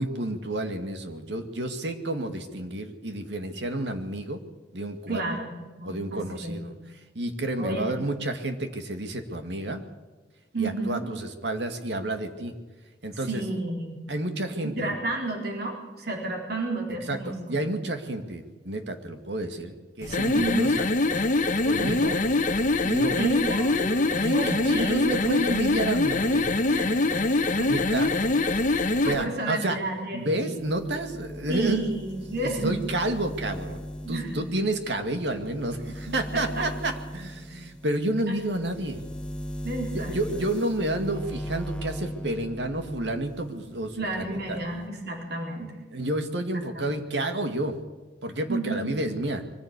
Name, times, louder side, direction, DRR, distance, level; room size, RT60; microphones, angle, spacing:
voice 1, 0.0-4.4 4.7-5.2 5.8-6.7 7.1-9.8 10.6-12.5 13.0-13.4 14.1-14.9 17.1-20.9 21.6-22.2 22.8-23.2 24.2-26.5 27.7-28.2 28.9-29.8 30.1-31.8 32.4-39.0 39.9-44.6 45.9-47.8 48.2-49.4, right 1 dB, 90° right, 6 dB, 2.3 m, -30 dB
voice 2, 5.1-6.6 7.6-7.9 10.5-11.1 13.3-14.0 14.6-17.7 20.3-20.7 21.8-22.0 23.2-25.2 26.7-27.0 27.6-27.7 28.8-30.6 31.5-32.8 34.0-34.4 36.1-36.6 38.3-38.4 39.6-40.4 44.0-45.7 46.5-47.0 48.5-49.0, right 2 dB, 65° right, 0 dB, 4.2 m, -32 dB
sound 1, 20.0-29.2, left 2 dB, 50° left, 0.9 m, -24 dB
sound 2, 30.6-43.5 43.9-44.9, equal, 5° left, 1.2 m, -38 dB
23.5 x 15.0 x 8.4 m, 1.3 s
head